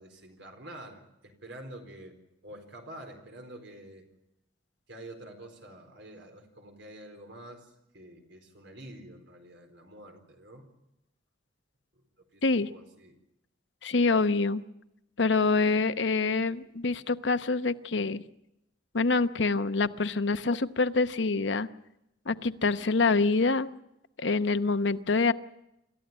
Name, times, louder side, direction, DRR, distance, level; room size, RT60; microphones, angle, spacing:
voice 1, 0.0-2.2 2.4-4.1 4.9-10.7 12.3-13.1, right 1 dB, 80° right, 4 dB, 4.3 m, -47 dB
voice 2, 13.8-14.6 15.2-18.2 18.9-21.7 22.3-23.7 24.2-25.3, left 3 dB, 80° left, 12 dB, 0.9 m, -26 dB
26.5 x 13.5 x 8.8 m, 0.87 s
head